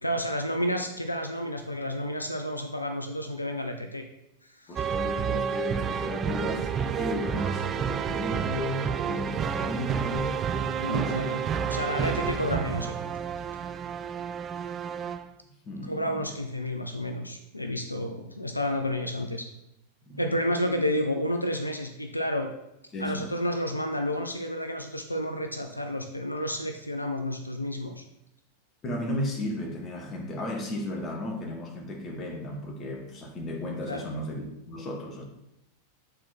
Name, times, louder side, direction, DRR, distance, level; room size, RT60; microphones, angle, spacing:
voice 1, 0.0-4.0 4.4-4.9 10.8-11.4 11.6-12.9 15.9-19.5 20.2-22.5 23.0-28.0 33.9-34.1, left 1 dB, 85° left, 5 dB, 0.5 m, -30 dB
voice 2, 4.7-10.3 10.9-11.3 15.7-16.2 20.1-20.2 22.9-23.3 28.8-35.2, left 1 dB, 25° left, 2 dB, 1.5 m, -34 dB
sound 1, 4.8-15.3, right 7 dB, 25° right, 0.4 m, -30 dB
8.0 x 4.2 x 4.3 m, 0.88 s
figure-of-eight pair, 90°, 0 cm